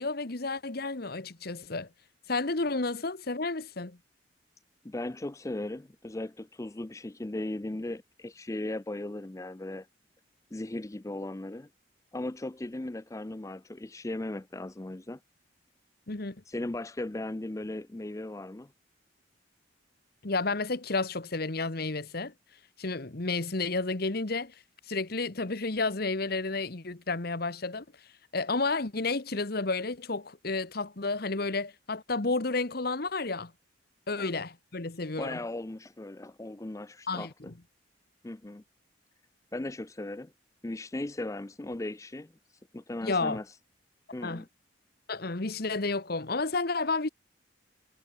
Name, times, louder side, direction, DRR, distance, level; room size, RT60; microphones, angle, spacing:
voice 1, 0.0-1.9 2.3-4.0 16.1-16.4 20.2-22.3 22.8-24.5 24.9-27.8 28.3-33.5 34.1-35.4 37.1-37.5 43.0-43.4 44.2-44.4 45.1-47.1, left 3 dB, 50° left, 1.2 m, -31 dB
voice 2, 4.8-9.9 10.5-11.7 12.1-15.2 16.5-18.7 34.2-34.3 35.2-37.5 38.2-38.6 39.5-40.3 40.6-42.3 42.7-43.5 44.1-44.5, left 1 dB, 15° left, 0.5 m, -37 dB
head